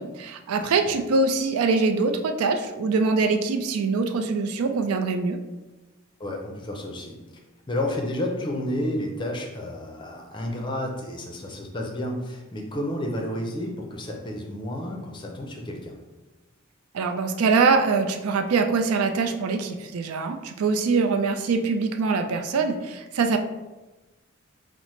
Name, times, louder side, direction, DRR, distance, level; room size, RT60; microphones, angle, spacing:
voice 1, 0.0-5.4 16.9-23.4, right 4 dB, 90° right, 6 dB, 0.4 m, -23 dB
voice 2, 0.5-0.9 6.2-7.2 7.7-16.0, left 1 dB, 20° left, 1 dB, 0.5 m, -31 dB
5.5 x 2.0 x 3.1 m, 1.1 s
head